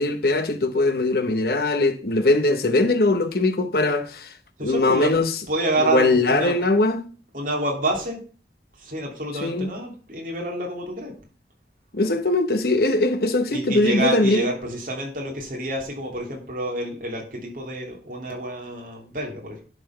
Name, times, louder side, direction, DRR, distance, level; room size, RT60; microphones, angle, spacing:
voice 1, 0.0-4.3 4.6-5.3 5.9-7.0 9.4-9.7 11.9-14.5, left 2 dB, 55° left, 1.0 m, -21 dB
voice 2, 4.6-5.2 5.5-6.6 7.3-8.2 8.8-11.1 13.5-19.6, right 1 dB, 50° right, 2.8 m, -28 dB
11.0 x 4.4 x 5.7 m
head